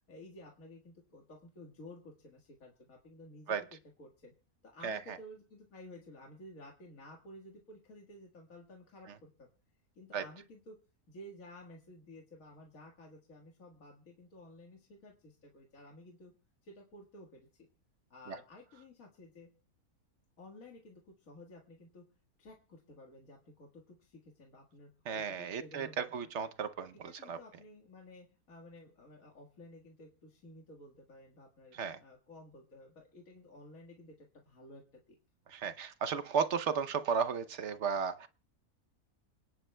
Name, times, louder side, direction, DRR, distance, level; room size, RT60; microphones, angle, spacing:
voice 1, 0.1-4.3 4.6-9.5 10.0-10.8 11.1-16.3 16.6-17.5 18.1-19.5 20.4-22.0 22.4-26.3 27.0-35.2, left 1 dB, 65° left, 0 dB, 2.1 m, -54 dB
voice 2, 4.8-5.2 10.1-10.2 18.3-18.4 25.1-27.4 31.7-32.0 35.5-38.3, right 6 dB, 55° right, 12 dB, 1.0 m, -34 dB
27.5 x 10.5 x 2.2 m, 0.36 s
omnidirectional pair, 1.6 m